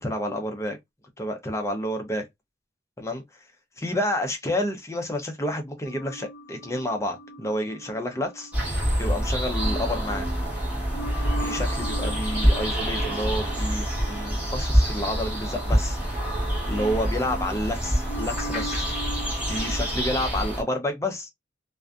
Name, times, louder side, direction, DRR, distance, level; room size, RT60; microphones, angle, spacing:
voice 1, 0.0-0.8 1.2-2.2 3.0-3.2 3.8-8.5 9.0-10.3 11.4-16.0 16.7-18.9 19.5-21.3, left 1 dB, 15° left, 0.5 m, -29 dB
sound 1, 5.9-9.1 9.6-16.4 16.7-19.9, equal, 55° left, 1.0 m, -40 dB
sound 2, 8.5-20.6, equal, 5° right, 1.0 m, -26 dB
2.5 x 2.4 x 2.2 m
head